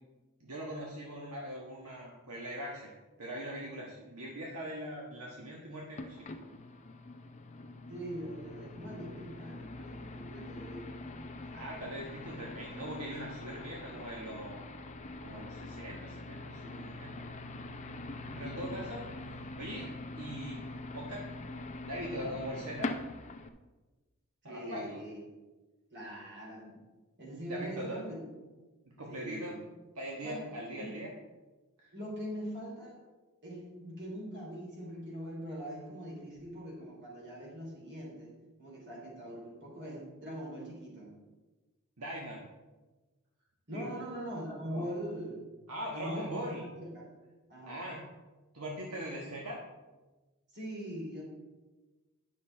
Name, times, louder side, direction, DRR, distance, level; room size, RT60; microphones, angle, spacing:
voice 1, 0.4-2.9 3.2-6.2 11.5-14.7 15.2-17.1 18.3-19.9 20.1-20.6 20.9-21.3 21.9-22.9 24.4-25.0 27.5-28.0 29.0-29.6 29.9-31.1 31.8-31.9 42.0-42.4 43.7-43.9 44.7-44.9 45.7-46.6 47.7-48.0 48.5-49.6, equal, 75° right, -2 dB, 1.4 m, -41 dB
sound 1, 5.9-23.5, left 2 dB, 30° left, 0.6 m, -43 dB
voice 2, 7.9-10.9 24.4-25.2 25.9-26.8 27.2-28.2 29.1-29.6 30.2-30.5 30.8-30.9 31.9-33.0 33.4-38.3 38.6-41.2 43.7-45.4 45.9-46.5 46.8-47.1 47.5-47.8 50.5-51.2, equal, 55° right, -3 dB, 3.4 m, -42 dB
10.0 x 6.6 x 4.4 m, 1.2 s
head